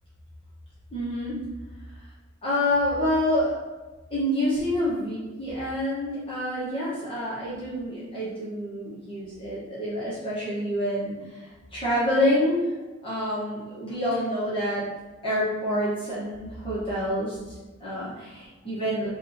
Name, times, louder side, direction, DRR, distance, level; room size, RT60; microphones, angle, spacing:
voice 1, 0.9-1.4 2.4-3.5 4.1-12.7 13.0-14.8 15.2-19.1, left 1 dB, 25° left, -9 dB, 1.1 m, -27 dB
5.5 x 3.3 x 2.7 m, 1.2 s
head